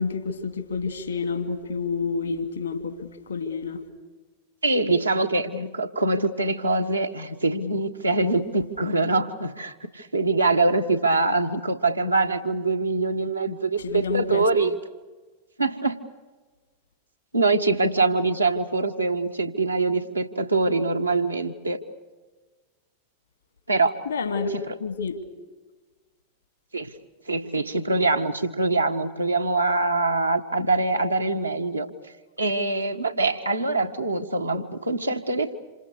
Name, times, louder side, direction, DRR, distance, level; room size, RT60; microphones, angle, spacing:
voice 1, 0.0-3.8 13.8-14.4 24.1-24.5 24.8-25.2, left 4 dB, 75° left, 8 dB, 2.5 m, -29 dB
voice 2, 4.6-14.7 15.6-16.0 17.3-21.8 23.7-24.0 24.5-24.6 26.7-26.9 27.3-31.9 32.4-35.5, right 3 dB, 85° right, 4 dB, 1.5 m, -24 dB
28.0 x 26.5 x 6.6 m, 1.3 s
figure-of-eight pair, 90°, 0 cm